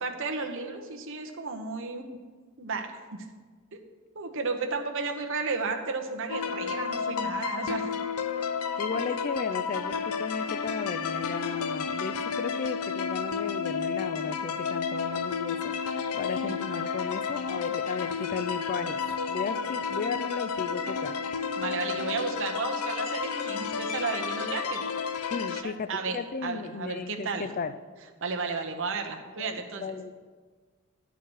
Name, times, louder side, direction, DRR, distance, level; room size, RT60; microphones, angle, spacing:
voice 1, 0.0-2.2 2.6-3.3 4.1-7.9 8.9-9.0 16.4-16.6 21.6-24.8 25.5-27.5 28.2-30.0, right 4 dB, 60° right, 4 dB, 0.9 m, -33 dB
sound 1, 6.3-25.6, left 6 dB, 90° left, 0.5 m, -31 dB
voice 2, 8.8-21.2 25.3-27.8 29.4-30.1, left 5 dB, 40° left, 12 dB, 0.3 m, -35 dB
11.0 x 4.6 x 6.2 m, 1.5 s
head